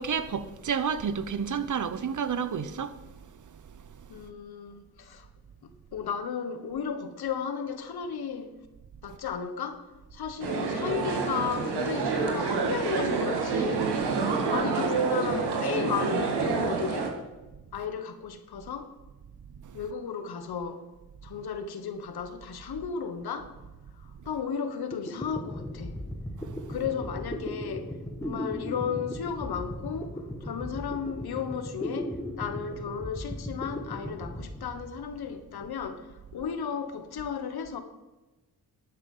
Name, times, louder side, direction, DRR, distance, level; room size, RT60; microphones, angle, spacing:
voice 1, 0.0-3.0 26.4-26.8, right 6 dB, 50° right, 0.9 m, -30 dB
voice 2, 4.1-5.3 5.6-8.5 9.0-9.8 10.1-13.9 14.5-17.1 17.7-18.9 19.7-20.9 21.2-23.6 24.0-26.0 26.7-27.9 28.2-36.1 36.3-37.8, left 6 dB, 70° left, 1.4 m, -34 dB
sound 1, 10.4-17.1, right 4 dB, 80° right, 1.9 m, -28 dB
sound 2, 24.6-24.7 24.9-35.4, left 1 dB, 10° left, 1.5 m, -37 dB
11.0 x 9.0 x 5.6 m
cardioid pair, 75°, 39 cm